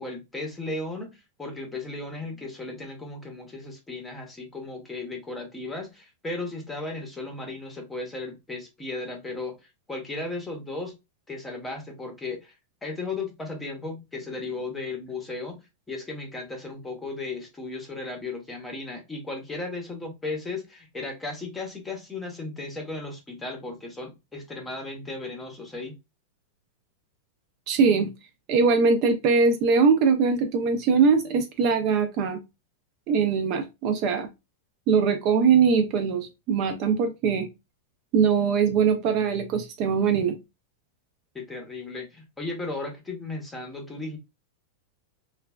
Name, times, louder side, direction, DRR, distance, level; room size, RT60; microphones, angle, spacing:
voice 1, 0.0-9.5 9.9-10.9 11.3-12.5 12.8-25.9 41.3-44.2, left 3 dB, 10° left, 0.8 m, -35 dB
voice 2, 27.7-28.1 28.5-32.4 33.1-34.3 34.9-37.5 38.1-40.4, right 5 dB, 40° right, 0.4 m, -22 dB
3.1 x 2.2 x 2.2 m
supercardioid pair, 160°, 0 cm